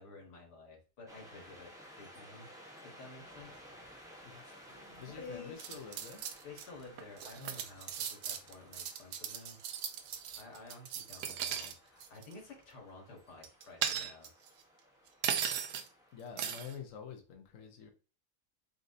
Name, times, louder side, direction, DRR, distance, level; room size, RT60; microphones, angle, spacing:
voice 1, 0.0-2.5 2.8-3.7 4.4-5.8 6.4-9.6 10.4-14.3, left 3 dB, 90° left, 1 dB, 1.8 m, -52 dB
sound 1, 1.1-16.8, equal, 5° right, 0.6 m, -57 dB
voice 2, 5.0-6.2 16.1-17.9, left 6 dB, 60° left, 3 dB, 1.0 m, -47 dB
sound 2, 5.6-6.6 7.0-11.7 12.0-12.3 13.4-14.5 15.2-15.9 16.4-16.7, right 8 dB, 90° right, 1.2 m, -37 dB
4.1 x 3.9 x 2.6 m, 0.34 s
omnidirectional pair, 1.7 m